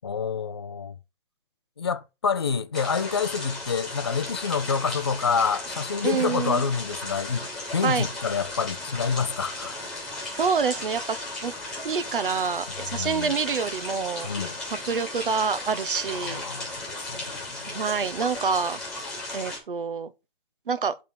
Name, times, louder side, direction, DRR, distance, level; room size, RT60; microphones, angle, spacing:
voice 1, 0.0-0.9 1.8-9.8 12.9-13.3 14.2-14.6 16.1-16.7 17.1-17.6, left 6 dB, 30° left, 0.4 m, -27 dB
sound 1, 2.7-19.6, left 2 dB, ahead, 2.2 m, -35 dB
voice 2, 6.0-6.6 7.8-8.1 10.3-11.2 11.4-11.5 11.8-14.3 14.9-16.4 17.7-18.8 19.3-20.1 20.7-20.9, right 6 dB, 60° right, 0.9 m, -27 dB
11.0 x 3.6 x 4.2 m
figure-of-eight pair, 150°, 29 cm